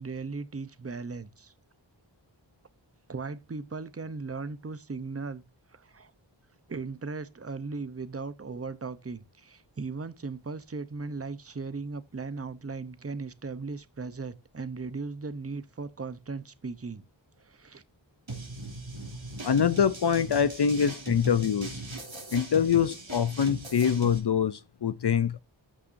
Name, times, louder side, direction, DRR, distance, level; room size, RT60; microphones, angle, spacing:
voice 1, 0.0-1.5 3.1-5.4 5.7-6.1 6.7-17.1 17.4-17.8, right 4 dB, 30° right, 0.8 m, -37 dB
sound 1, 18.3-24.2, right 3 dB, 85° right, 3.1 m, -40 dB
voice 2, 19.4-21.8 22.3-25.4, left 7 dB, 60° left, 0.6 m, -25 dB
14.0 x 5.9 x 2.6 m
wide cardioid pair, 40°, 46 cm